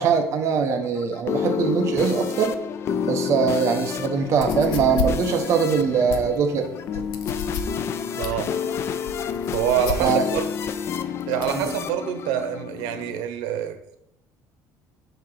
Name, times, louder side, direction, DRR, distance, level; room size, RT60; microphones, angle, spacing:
voice 1, 0.0-2.6 3.0-7.0 10.0-10.2 11.5-11.6, right 6 dB, 40° right, 4 dB, 1.0 m, -22 dB
sound 1, 0.5-13.2, left 7 dB, 35° left, 0.4 m, -29 dB
sound 2, 4.3-11.6, left 6 dB, 80° left, 0.7 m, -33 dB
voice 2, 8.1-8.5 9.5-10.5 11.3-14.0, right 9 dB, 90° right, 7 dB, 0.9 m, -26 dB
7.2 x 3.0 x 5.6 m, 0.78 s
cardioid pair, 165°, 7 cm